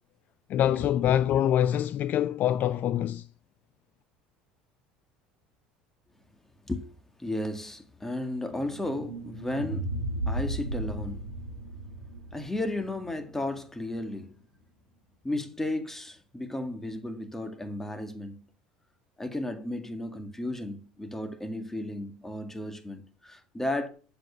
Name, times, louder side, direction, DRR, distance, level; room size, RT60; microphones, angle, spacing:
voice 1, 0.5-3.2, left 11 dB, 45° left, 0.4 m, -25 dB
voice 2, 7.2-11.3 12.3-14.4 15.2-18.5 19.2-23.9, left 1 dB, 10° left, 2.0 m, -34 dB
sound 1, 8.5-13.6, right 1 dB, 90° right, 1.9 m, -35 dB
7.5 x 7.1 x 6.9 m
hypercardioid pair, 70°, 4 cm